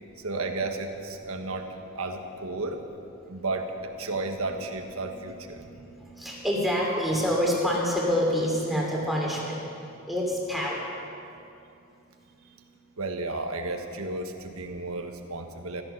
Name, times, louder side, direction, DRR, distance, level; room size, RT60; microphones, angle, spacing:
voice 1, 0.2-1.7 1.9-2.8 3.3-3.7 4.0-5.6 13.0-15.8, right 2 dB, 90° right, 5 dB, 1.5 m, -33 dB
voice 2, 6.2-9.6 10.1-10.9, equal, ahead, -3 dB, 2.9 m, -26 dB
15.5 x 13.5 x 6.6 m, 2.6 s
head